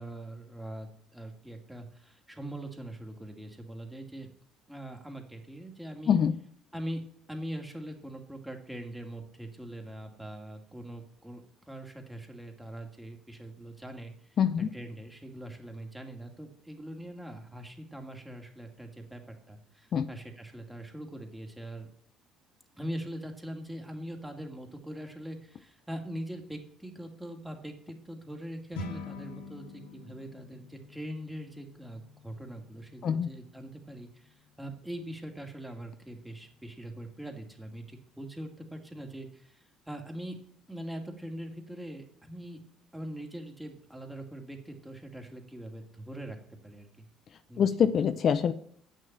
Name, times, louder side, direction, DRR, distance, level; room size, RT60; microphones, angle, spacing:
voice 1, 0.0-4.3 4.7-6.2 6.7-7.0 7.3-21.9 22.8-40.4 40.7-42.6 42.9-46.4 46.6-47.1 47.5-47.7, right 1 dB, 5° right, 3 dB, 2.2 m, -42 dB
voice 2, 14.4-14.7 19.9-20.1 33.0-33.3 47.6-48.5, left 8 dB, 50° left, 11 dB, 0.6 m, -24 dB
sound 1, 28.7-38.2, left 3 dB, 85° left, 1.6 m, -48 dB
8.5 x 6.5 x 7.4 m, 0.66 s
supercardioid pair, 75°, 0 cm